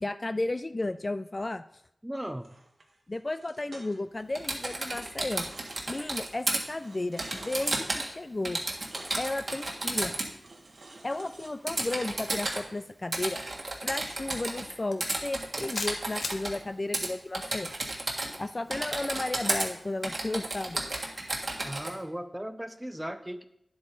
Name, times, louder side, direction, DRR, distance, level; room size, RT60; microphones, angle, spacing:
voice 1, 0.0-1.6 3.1-5.5 5.9-8.6 9.2-10.1 11.0-13.4 13.8-17.7 18.4-20.8, left 2 dB, 40° left, 11 dB, 0.3 m, -33 dB
voice 2, 2.0-2.5 21.6-23.5, equal, 10° right, 10 dB, 0.6 m, -37 dB
sound 1, 2.4-4.2 4.6-6.0 6.8-7.8 8.7-9.2 9.5-9.8 10.4-11.5 11.8-12.7, right 2 dB, 75° right, 1.4 m, -50 dB
Typing, 4.3-6.6 7.2-8.1 8.4-10.3 11.7-12.6 13.1-14.7 15.0-16.6 16.9-17.1 17.3-18.4 18.7-19.7 20.0-21.9, right 2 dB, 55° right, 1.6 m, -32 dB
sound 2, 14.9-15.1 15.7-16.4, left 3 dB, 85° left, 0.8 m, -35 dB
10.0 x 7.8 x 3.8 m, 0.76 s
wide cardioid pair, 60°, 0 cm